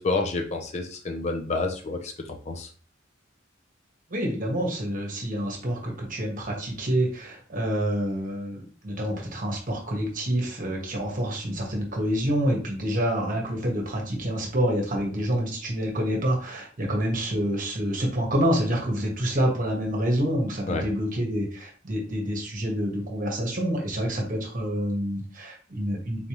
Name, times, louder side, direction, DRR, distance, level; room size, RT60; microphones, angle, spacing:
voice 1, 0.0-2.1 2.5-2.7 20.7-20.8, left 3 dB, 35° left, 4 dB, 0.5 m, -28 dB
voice 2, 4.1-26.3, equal, 45° right, 0 dB, 1.2 m, -27 dB
3.9 x 3.3 x 2.9 m, 0.41 s
head